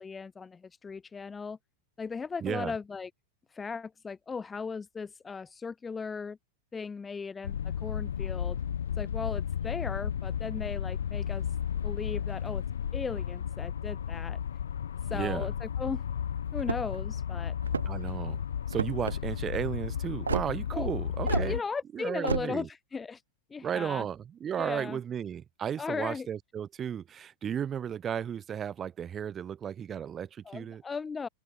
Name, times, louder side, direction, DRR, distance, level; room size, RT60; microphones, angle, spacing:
voice 1, 0.0-1.6 2.0-3.1 3.5-6.4 6.7-8.6 9.0-11.5 11.8-12.6 12.9-14.4 15.1-16.0 16.5-17.6 20.7-20.9 21.3-23.2 23.5-24.0 24.6-25.0 25.8-26.3 30.4-31.3, left 5 dB, 15° left, 1.3 m, -37 dB
voice 2, 2.4-2.8 15.1-15.5 17.8-18.4 18.7-21.6 21.9-22.7 23.6-30.8, right 8 dB, 25° right, 4.6 m, -34 dB
sound 1, 7.4-21.6, left 8 dB, 65° left, 0.9 m, -33 dB
sound 2, 16.6-17.0 17.6-18.1 18.7-19.1 20.3-20.5 21.3-21.5 22.2-22.5, right 5 dB, 75° right, 0.4 m, -30 dB
open air
figure-of-eight pair, 90°, 0 cm